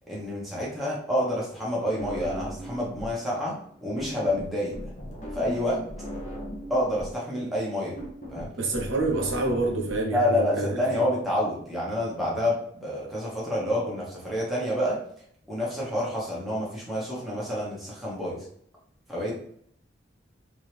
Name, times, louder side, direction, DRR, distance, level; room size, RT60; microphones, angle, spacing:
voice 1, 0.1-3.5 3.8-4.7 5.3-5.8 6.7-7.9 8.3-8.5 10.1-15.0 15.5-18.4 19.1-19.3, left 1 dB, ahead, -6 dB, 1.2 m, -28 dB
sound 1, 2.0-3.2 3.5-10.0, equal, 35° left, 0.9 m, -38 dB
voice 2, 8.6-10.8, right 2 dB, 80° right, 1 dB, 0.9 m, -27 dB
3.6 x 3.2 x 3.4 m, 0.64 s
head